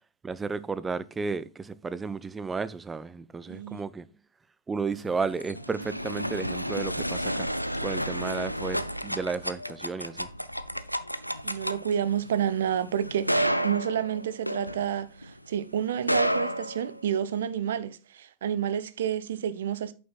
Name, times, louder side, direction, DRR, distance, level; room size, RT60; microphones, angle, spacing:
voice 1, 0.2-4.1 4.7-7.5 7.8-10.3, right 4 dB, 15° right, 0.4 m, -33 dB
voice 2, 3.5-3.8 11.4-19.9, right 9 dB, 60° right, 0.6 m, -30 dB
sound 1, 5.0-15.3 15.9-17.4, equal, 90° left, 0.4 m, -31 dB
8.6 x 6.9 x 2.4 m
figure-of-eight pair, 90°, 0 cm